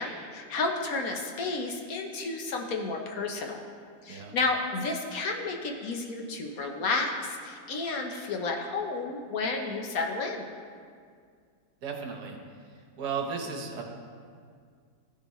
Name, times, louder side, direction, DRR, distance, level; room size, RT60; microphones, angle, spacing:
voice 1, 0.0-3.6 4.0-10.4, left 3 dB, 65° left, 2 dB, 1.3 m, -31 dB
voice 2, 11.8-12.4 13.0-13.8, right 5 dB, 75° right, 1 dB, 1.6 m, -34 dB
14.5 x 6.6 x 3.1 m, 2.1 s
omnidirectional pair, 1.8 m